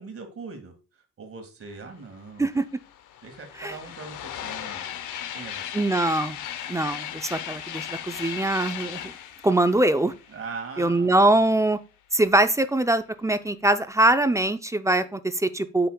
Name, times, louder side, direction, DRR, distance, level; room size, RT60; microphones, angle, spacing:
voice 1, 0.0-2.5 3.2-4.8 5.3-5.8 10.3-11.4, right 4 dB, 45° right, 5 dB, 1.8 m, -41 dB
sound 1, 2.2-2.3 2.5-11.1, left 10 dB, 85° left, 0.7 m, -37 dB
voice 2, 5.7-6.4 6.7-9.0 9.4-10.1 10.8-11.8 12.1-15.9, right 1 dB, 10° right, 11 dB, 0.4 m, -22 dB
8.2 x 5.7 x 2.2 m, 0.31 s
cardioid pair, 90°, 30 cm